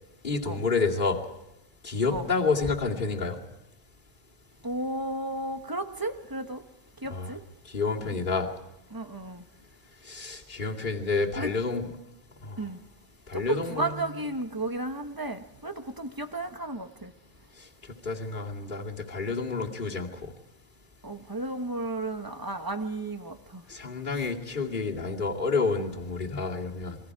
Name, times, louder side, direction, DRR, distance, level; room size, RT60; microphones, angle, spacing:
voice 1, 0.2-1.2 1.8-3.4 7.1-7.3 7.7-8.5 10.1-11.9 12.4-12.6 13.3-14.0 18.0-20.1 23.7-27.0, left 4 dB, 35° left, -2 dB, 2.7 m, -29 dB
voice 2, 4.6-6.6 7.0-7.4 8.0-8.1 8.9-9.4 11.4-11.5 12.6-12.8 13.3-17.1 21.0-23.6 24.1-24.3, right 2 dB, 15° right, 6 dB, 1.3 m, -33 dB
28.5 x 22.5 x 4.8 m, 0.91 s
omnidirectional pair, 1.4 m